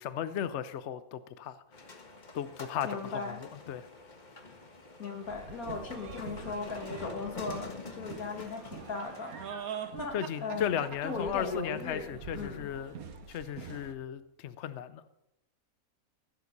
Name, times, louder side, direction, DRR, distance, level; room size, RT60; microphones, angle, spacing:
voice 1, 0.0-1.6 2.3-3.8 10.1-12.9 13.3-15.0, left 9 dB, 60° left, 14 dB, 0.8 m, -35 dB
sound 1, 1.7-9.4, left 3 dB, 35° left, 1.4 m, -47 dB
voice 2, 2.8-3.4 5.0-9.7 9.9-12.7, left 4 dB, 80° left, 4 dB, 2.2 m, -38 dB
sound 2, 5.3-13.9, right 7 dB, 80° right, 1.5 m, -44 dB
15.5 x 7.9 x 6.6 m, 0.85 s
omnidirectional pair, 1.5 m